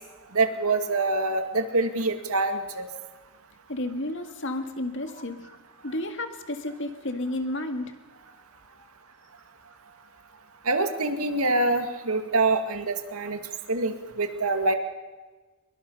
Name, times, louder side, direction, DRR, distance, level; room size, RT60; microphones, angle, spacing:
voice 1, 0.3-2.9 10.7-13.4 13.7-14.7, right 2 dB, 90° right, 6 dB, 2.2 m, -25 dB
voice 2, 3.7-5.5 5.8-7.9, left 1 dB, 60° left, 6 dB, 2.1 m, -32 dB
23.5 x 23.0 x 5.6 m, 1.3 s
head